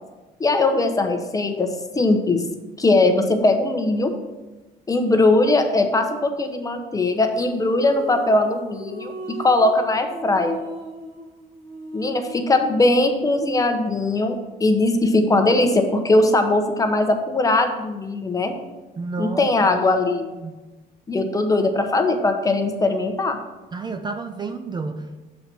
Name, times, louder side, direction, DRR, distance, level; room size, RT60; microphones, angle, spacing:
voice 1, 0.4-2.4 2.8-4.1 4.9-10.6 11.9-18.5 19.2-20.3 21.1-23.4, left 2 dB, 20° left, 6 dB, 0.8 m, -20 dB
sound 1, 7.3-12.7, equal, 90° right, 1.6 m, -37 dB
voice 2, 19.0-19.5 20.4-20.6 23.7-25.2, right 4 dB, 25° right, 7 dB, 0.5 m, -30 dB
6.7 x 4.1 x 6.0 m, 1.2 s
cardioid pair, 110°, 17 cm